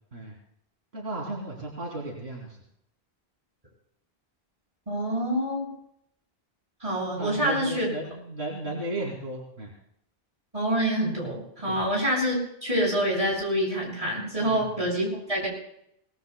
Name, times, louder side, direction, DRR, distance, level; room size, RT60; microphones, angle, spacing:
voice 1, 0.9-2.6 7.2-9.7 11.7-11.8 14.4-14.6, right 2 dB, 80° right, -2 dB, 3.1 m, -35 dB
voice 2, 4.9-5.7 6.8-7.9 10.5-12.4 12.6-15.5, equal, 35° right, -3 dB, 7.5 m, -26 dB
24.5 x 19.0 x 2.2 m, 0.74 s
omnidirectional pair, 1.0 m